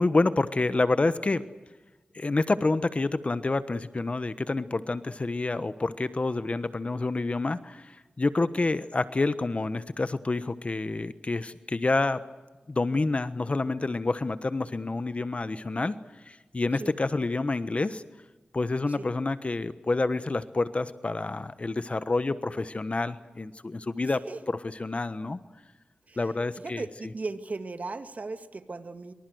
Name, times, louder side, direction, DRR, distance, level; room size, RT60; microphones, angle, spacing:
voice 1, 0.0-1.4 2.1-12.2 12.7-15.9 16.3-18.0 18.5-24.2 24.8-25.4 26.2-26.8, left 3 dB, 45° left, 13 dB, 1.2 m, -28 dB
voice 2, 24.1-24.4 26.1-29.1, right 3 dB, 60° right, 9 dB, 2.1 m, -38 dB
25.0 x 24.5 x 7.9 m, 1.1 s
wide cardioid pair, 60°, 3 cm